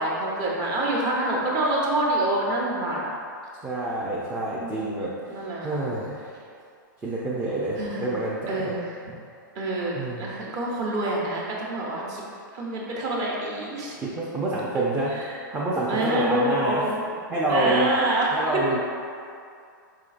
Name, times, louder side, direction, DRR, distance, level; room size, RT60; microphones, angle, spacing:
voice 1, 0.0-3.1 4.6-5.8 7.8-8.1 8.5-9.1 9.5-12.2 12.5-14.0 15.1-15.4 15.9-17.0 17.5-18.6, right 1 dB, 35° right, -3 dB, 0.9 m, -27 dB
voice 2, 3.6-5.1 5.6-6.3 7.0-8.7 10.0-10.3 14.0-15.1 15.5-16.8 17.3-17.9 18.3-18.8, right 2 dB, 15° right, -6 dB, 0.5 m, -27 dB
4.9 x 3.7 x 2.5 m, 2.4 s
hypercardioid pair, 125°, 11 cm